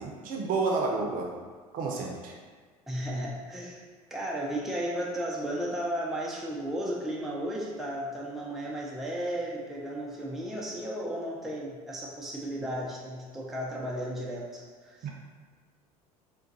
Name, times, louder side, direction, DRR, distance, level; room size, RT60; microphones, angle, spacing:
voice 1, 0.0-1.3 1.7-2.3 15.0-15.1, right 4 dB, 45° right, 0 dB, 0.6 m, -30 dB
voice 2, 2.9-3.8 4.1-15.1, right 1 dB, ahead, -4 dB, 0.5 m, -34 dB
3.6 x 2.2 x 2.7 m, 1.5 s
hypercardioid pair, 75°, 19 cm